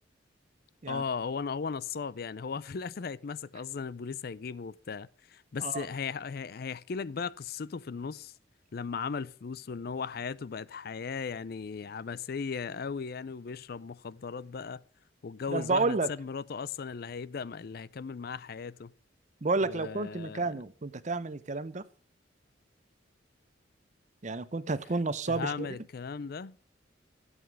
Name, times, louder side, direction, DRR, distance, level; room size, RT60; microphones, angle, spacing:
voice 1, 0.9-8.3 8.7-14.8 15.2-18.9 19.6-20.5 25.3-26.6, left 5 dB, 55° left, 0.4 m, -37 dB
voice 2, 15.5-16.1 19.4-21.9 24.2-25.7, right 3 dB, 40° right, 0.7 m, -31 dB
12.5 x 8.0 x 6.3 m
head